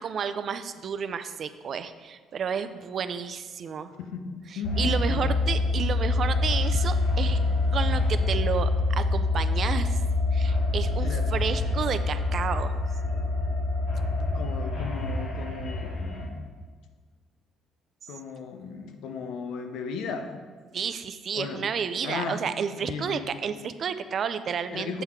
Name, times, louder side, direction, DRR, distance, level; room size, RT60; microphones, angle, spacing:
voice 1, 0.0-3.9 4.5-7.4 7.7-10.0 10.3-12.7 20.7-25.0, right 7 dB, 50° right, 11 dB, 0.4 m, -31 dB
voice 2, 4.0-5.3 11.0-11.3 14.2-16.5 18.1-20.4 21.3-21.7 22.0-22.4 22.8-23.3 24.7-25.0, left 5 dB, 80° left, 6 dB, 0.8 m, -36 dB
sound 1, 4.6-16.3, left 2 dB, 65° left, 1.7 m, -26 dB
8.1 x 5.6 x 4.6 m, 1.5 s
cardioid pair, 110°, 0 cm